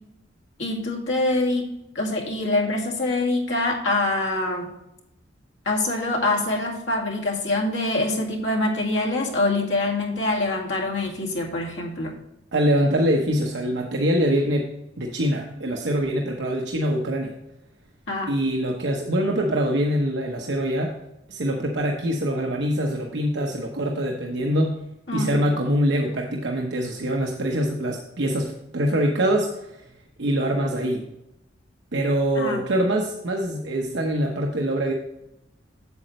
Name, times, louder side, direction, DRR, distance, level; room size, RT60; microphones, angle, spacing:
voice 1, 0.6-1.7 1.9-4.7 5.7-12.1 18.1-18.3 25.1-25.3 32.4-32.6, left 2 dB, 80° left, -1 dB, 2.1 m, -25 dB
voice 2, 12.5-14.6 15.0-17.3 18.3-20.9 21.3-24.8 25.1-29.8 30.2-31.0 31.9-34.9, equal, 70° right, 1 dB, 0.9 m, -24 dB
8.3 x 7.8 x 3.1 m, 0.88 s
head